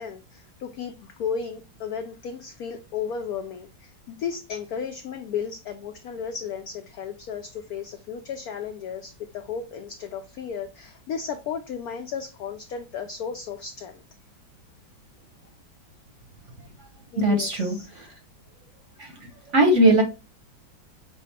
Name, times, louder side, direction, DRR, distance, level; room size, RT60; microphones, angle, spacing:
voice 1, 0.0-14.0 17.1-18.1, left 7 dB, 80° left, 0.8 m, -34 dB
voice 2, 17.2-18.1 19.0-19.1 19.5-20.0, right 1 dB, 50° right, 0.9 m, -19 dB
6.1 x 2.1 x 4.1 m
omnidirectional pair, 2.1 m